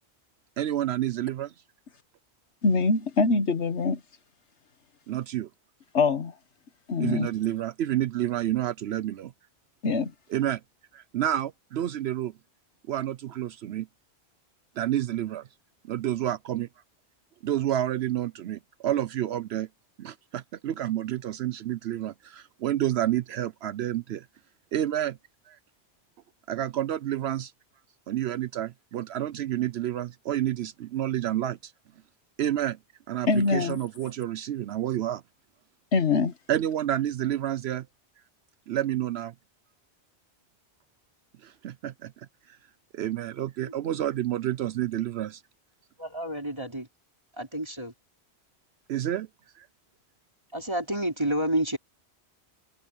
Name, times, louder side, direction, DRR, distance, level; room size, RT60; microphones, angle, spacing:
voice 1, 0.6-1.5 5.1-5.5 7.0-9.3 10.3-10.6 10.9-12.3 12.9-13.9 14.8-15.5 15.9-16.7 17.4-19.7 20.0-24.3 24.7-25.2 25.5-25.6 26.5-27.5 28.1-31.7 32.4-32.8 33.1-35.2 36.5-37.9 38.7-39.3 41.4-42.6 42.9-45.4 48.9-49.3 49.6-49.7, right 12 dB, 75° right, 0.8 m, -29 dB
voice 2, 2.6-4.0 5.9-6.3 6.9-7.3 9.8-10.1 33.3-33.8 35.9-36.3, left 3 dB, 85° left, 1.6 m, -23 dB
voice 3, 46.0-46.9 47.4-47.9 50.5-51.8, right 1 dB, 25° right, 4.2 m, -29 dB
omnidirectional pair, 1.1 m